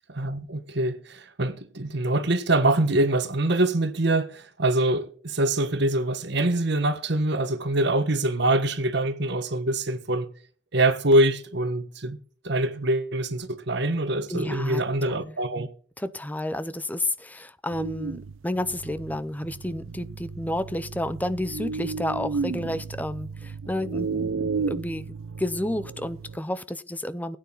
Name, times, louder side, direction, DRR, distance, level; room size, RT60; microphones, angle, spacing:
voice 1, 0.1-10.3 10.7-12.2 12.4-15.7, right 1 dB, 55° right, 1.5 m, -24 dB
voice 2, 14.3-14.8 15.1-15.3 16.0-27.4, left 1 dB, 10° left, 0.6 m, -31 dB
sound 1, 17.7-26.4, right 5 dB, 70° right, 0.5 m, -33 dB
16.5 x 9.4 x 3.9 m
head